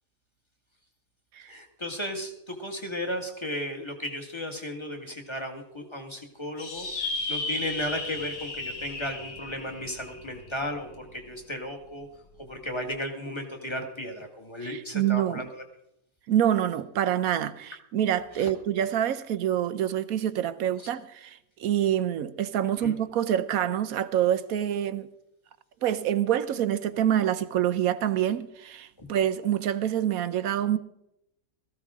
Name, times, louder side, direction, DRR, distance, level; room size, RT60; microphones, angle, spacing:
voice 1, 1.5-12.1 12.4-15.6 18.4-18.5 22.8-23.0 29.0-29.1, left 1 dB, 20° left, 1.9 m, -35 dB
sound 1, 6.6-11.3, left 3 dB, 80° left, 2.4 m, -35 dB
voice 2, 14.6-15.5 16.3-25.1 25.8-30.8, right 10 dB, 75° right, 1.2 m, -26 dB
17.5 x 15.0 x 3.7 m
omnidirectional pair, 1.5 m